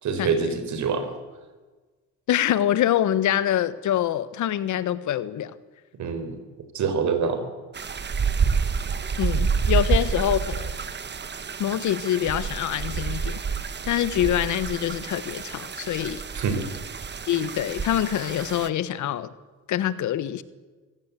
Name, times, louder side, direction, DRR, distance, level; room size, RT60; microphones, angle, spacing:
voice 1, 0.0-1.1 6.0-6.4 6.7-7.5 16.3-16.7, right 5 dB, 70° right, 4.2 m, -25 dB
voice 2, 2.3-5.5 9.2-10.7 11.6-13.4 13.9-16.2 17.3-19.3 19.7-20.4, left 11 dB, 75° left, 1.3 m, -25 dB
sound 1, 7.7-18.7, right 6 dB, 35° right, 1.2 m, -28 dB
24.5 x 16.5 x 8.3 m
cardioid pair, 90°, 30 cm